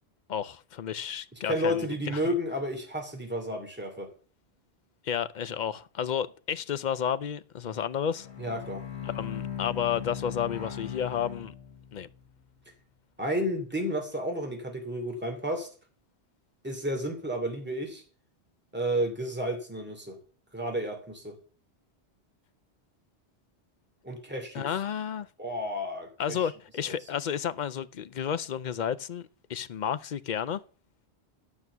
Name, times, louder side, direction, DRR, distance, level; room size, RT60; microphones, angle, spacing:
voice 1, 0.3-2.4 5.0-8.3 9.0-11.5 11.9-12.1 24.5-25.3 26.2-30.6, left 8 dB, 50° left, 0.7 m, -32 dB
voice 2, 1.4-4.1 8.4-8.8 13.2-15.7 16.6-18.0 18.7-20.2 20.5-21.4 24.0-24.7 25.4-26.5, equal, 10° right, 2.5 m, -31 dB
Bowed string instrument, 8.2-12.2, left 9 dB, 90° left, 1.8 m, -38 dB
11.5 x 6.1 x 6.8 m
omnidirectional pair, 1.1 m